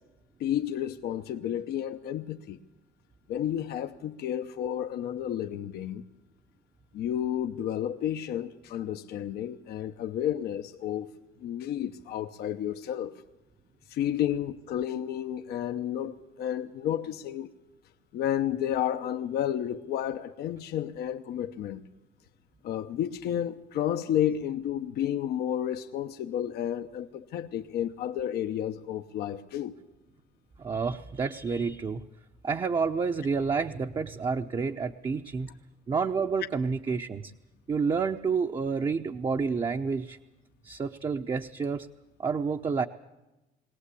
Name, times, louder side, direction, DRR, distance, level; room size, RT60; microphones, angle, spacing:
voice 1, 0.4-2.6 3.3-6.0 6.9-11.1 11.4-13.2 13.9-17.5 18.1-21.9 22.6-29.7, left 10 dB, 70° left, 0.9 m, -31 dB
voice 2, 30.6-32.0 32.4-35.5 35.9-37.3 37.7-40.2 40.6-41.9 42.2-42.9, right 5 dB, 30° right, 0.8 m, -29 dB
22.0 x 17.5 x 8.4 m
cardioid pair, 110°, 17 cm